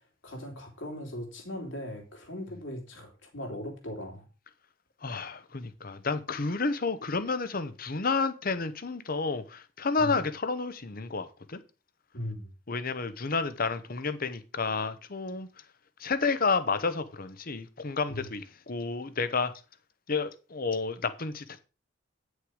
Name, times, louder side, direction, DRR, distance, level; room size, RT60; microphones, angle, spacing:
voice 1, 0.2-4.3 10.0-10.2 12.1-12.5 18.1-18.3, left 1 dB, 70° left, 3.5 m, -39 dB
voice 2, 5.0-11.6 12.7-15.5 16.0-19.5 20.1-21.6, left 4 dB, 45° left, 0.9 m, -30 dB
9.7 x 6.5 x 4.9 m
head